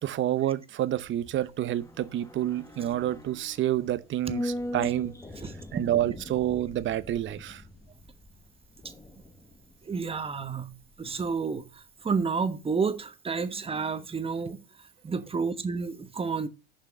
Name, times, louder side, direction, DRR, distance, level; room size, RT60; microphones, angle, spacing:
voice 1, 0.0-5.1 5.7-7.6, right 12 dB, 40° right, 0.8 m, -28 dB
sound 1, 0.9-11.3 11.6-11.7, left 1 dB, 10° left, 1.1 m, -41 dB
voice 2, 9.8-16.5, right 5 dB, 20° right, 1.2 m, -31 dB
7.2 x 5.5 x 6.5 m
hypercardioid pair, 80°, 30 cm